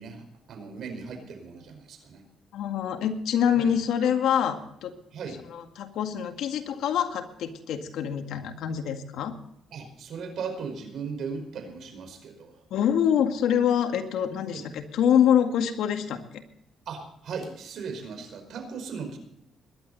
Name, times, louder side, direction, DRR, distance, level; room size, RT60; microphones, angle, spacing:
voice 1, 0.0-2.2 3.6-3.7 5.1-5.4 9.7-12.5 14.5-14.6 16.9-19.2, right 5 dB, 70° right, 6 dB, 5.0 m, -37 dB
voice 2, 2.5-4.9 5.5-9.3 12.7-16.4, left 9 dB, 85° left, 6 dB, 2.0 m, -25 dB
21.5 x 11.5 x 4.1 m, 0.77 s
cardioid pair, 90°, 0 cm